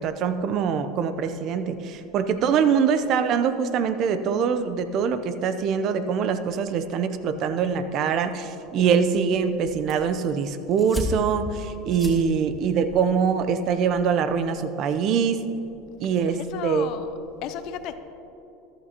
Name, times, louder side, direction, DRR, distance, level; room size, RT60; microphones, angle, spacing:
voice 1, 0.0-15.4 16.0-16.9, right 6 dB, 50° right, 11 dB, 0.7 m, -24 dB
sound 1, 9.7-14.6, left 1 dB, 5° left, 2.7 m, -37 dB
voice 2, 16.3-17.1 17.4-18.0, left 10 dB, 60° left, 10 dB, 0.7 m, -34 dB
14.0 x 12.0 x 3.0 m, 2.9 s
supercardioid pair, 105°, 0 cm